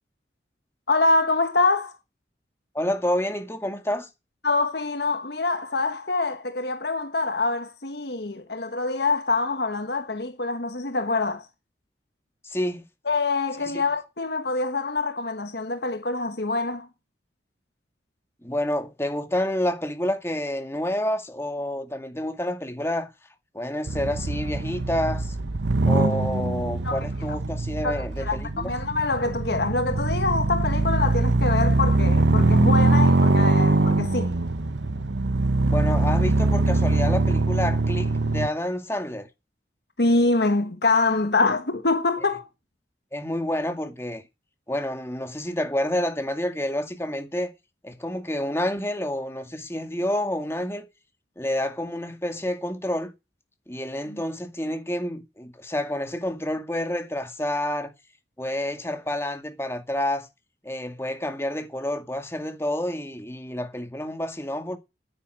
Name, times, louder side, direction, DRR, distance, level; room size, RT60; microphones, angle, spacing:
voice 1, 0.9-1.9 4.4-11.5 13.0-16.9 26.8-27.0 27.8-34.3 40.0-42.4 54.1-54.2, left 3 dB, 65° left, 1.5 m, -25 dB
voice 2, 2.7-4.1 12.4-12.8 18.4-23.1 23.5-25.4 25.8-28.7 35.6-39.3 43.1-44.2 44.7-47.5 47.8-50.9 51.4-53.1 53.7-57.9 58.4-60.3 60.6-64.8, left 1 dB, 15° left, 2.2 m, -29 dB
sound 1, 23.9-38.5, right 2 dB, 85° right, 1.0 m, -22 dB
10.0 x 9.7 x 9.2 m
head